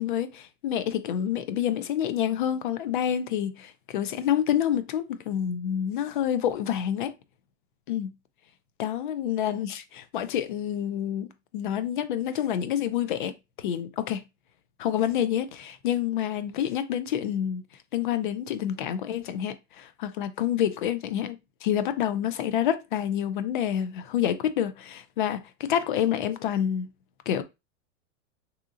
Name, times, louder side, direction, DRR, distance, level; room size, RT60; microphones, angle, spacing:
voice 1, 0.0-7.1 7.9-8.1 8.8-14.2 14.8-17.6 17.9-26.9 27.3-27.4, left 10 dB, 45° left, 0.5 m, -28 dB
3.7 x 2.8 x 2.4 m
supercardioid pair, 170°, 37 cm